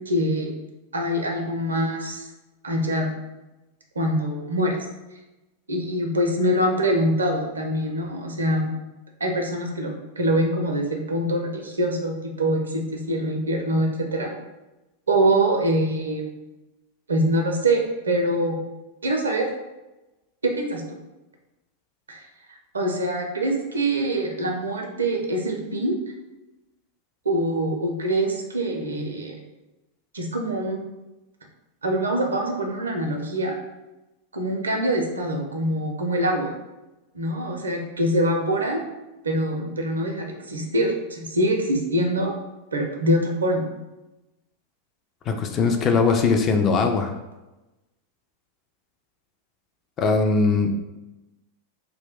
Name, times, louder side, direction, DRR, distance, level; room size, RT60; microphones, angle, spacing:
voice 1, 0.1-0.5 0.9-2.3 2.6-3.1 4.0-4.8 5.7-8.7 9.2-14.3 15.1-16.2 17.1-18.6 19.0-19.5 20.4-20.8 22.1-22.2 22.7-26.0 27.2-29.4 30.1-30.8 31.8-33.5 34.3-36.5 37.1-38.8 39.2-42.3 42.7-43.6, right 1 dB, 75° right, 2 dB, 0.5 m, -24 dB
voice 2, 45.3-47.1 50.0-50.7, left 4 dB, 30° left, 4 dB, 0.3 m, -20 dB
2.2 x 2.1 x 3.5 m, 1.0 s
figure-of-eight pair, 90°, 0 cm